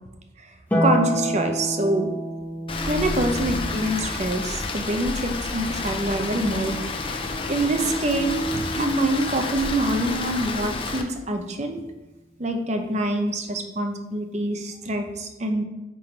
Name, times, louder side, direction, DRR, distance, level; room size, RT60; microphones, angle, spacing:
Harp, 0.7-7.2 8.8-9.8, equal, 10° left, 1.0 m, -30 dB
voice 1, 0.8-2.1 2.9-7.1 7.5-11.8 12.4-15.6, right 1 dB, 35° right, 5 dB, 0.8 m, -25 dB
Rain, 2.7-11.0, left 2 dB, 30° left, 0.6 m, -30 dB
8.8 x 3.9 x 4.5 m, 1.1 s
head